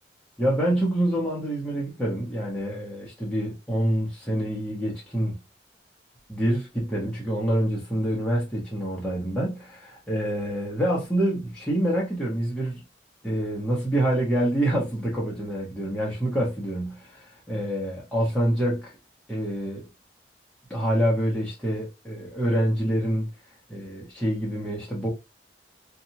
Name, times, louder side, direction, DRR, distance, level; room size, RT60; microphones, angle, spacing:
voice 1, 0.4-5.4 6.3-12.8 13.2-19.0 19.3-19.9 20.7-23.3 23.7-25.1, right 1 dB, 5° left, 0.7 m, -26 dB
2.8 x 2.3 x 2.7 m
head